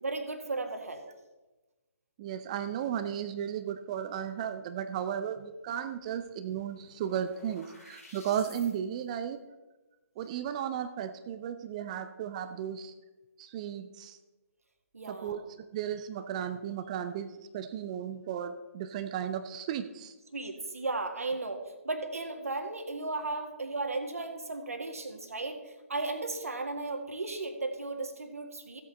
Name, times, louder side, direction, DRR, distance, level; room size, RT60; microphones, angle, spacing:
voice 1, 0.0-1.0 14.9-15.5 20.3-28.8, right 3 dB, 70° right, 5 dB, 1.8 m, -35 dB
voice 2, 2.2-9.4 10.2-12.9 13.4-14.2 15.1-20.1, right 9 dB, 25° right, 10 dB, 0.5 m, -35 dB
sound 1, 5.9-6.0 6.2-8.7, left 1 dB, 80° left, 4.4 m, -53 dB
15.5 x 8.3 x 4.2 m, 1.1 s
figure-of-eight pair, 135°, 8 cm